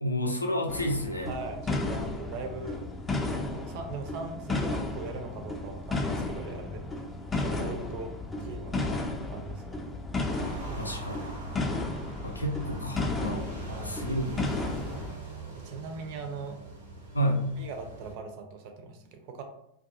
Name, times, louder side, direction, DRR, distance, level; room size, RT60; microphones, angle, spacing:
voice 1, 0.0-1.3 8.8-8.9 10.8-11.4 12.2-14.3 17.1-17.5, equal, 80° left, 2 dB, 0.4 m, -30 dB
sound 1, 0.7-15.1, left 2 dB, 15° left, 0.3 m, -33 dB
voice 2, 1.3-2.9 3.4-6.9 7.3-8.1 8.4-9.9 13.7-14.0 15.6-16.6 17.6-19.4, right 4 dB, 45° right, 5 dB, 0.5 m, -40 dB
sound 2, 10.3-18.1, right 3 dB, 80° right, 0.7 m, -42 dB
2.3 x 2.2 x 2.6 m, 0.76 s
figure-of-eight pair, 90°, 0 cm